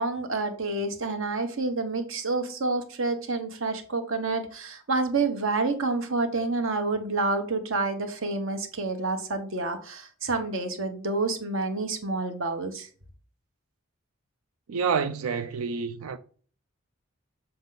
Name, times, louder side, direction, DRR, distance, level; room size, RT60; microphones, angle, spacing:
voice 1, 0.0-12.9, right 3 dB, 70° right, 1.2 m, -28 dB
voice 2, 14.7-16.2, right 5 dB, 90° right, 0.4 m, -28 dB
7.1 x 4.3 x 3.9 m
head